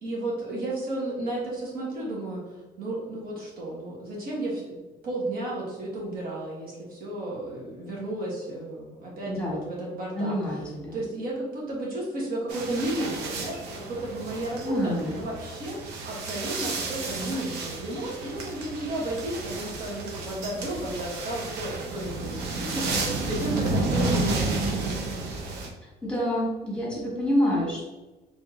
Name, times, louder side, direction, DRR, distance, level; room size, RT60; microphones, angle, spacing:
voice 1, 0.0-4.8 5.0-24.8, right 1 dB, 60° right, -4 dB, 1.4 m, -33 dB
voice 2, 9.3-9.6 10.2-10.9 14.6-15.1 26.0-27.9, equal, 5° left, -5 dB, 1.5 m, -27 dB
sound 1, 12.5-25.7, right 2 dB, 85° right, 0.7 m, -31 dB
3.6 x 3.4 x 2.8 m, 1.1 s
cardioid pair, 110°, 17 cm